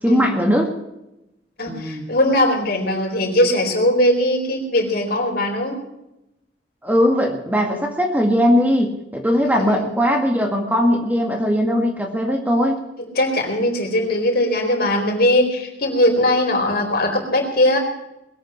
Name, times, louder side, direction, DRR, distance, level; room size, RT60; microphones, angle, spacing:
voice 1, 0.0-0.7 1.7-2.1 6.8-12.8, equal, 10° right, 2 dB, 2.0 m, -19 dB
voice 2, 1.6-5.8 9.4-9.8 13.1-17.8, left 1 dB, 55° left, 2 dB, 4.3 m, -20 dB
21.0 x 9.0 x 6.4 m, 0.88 s
head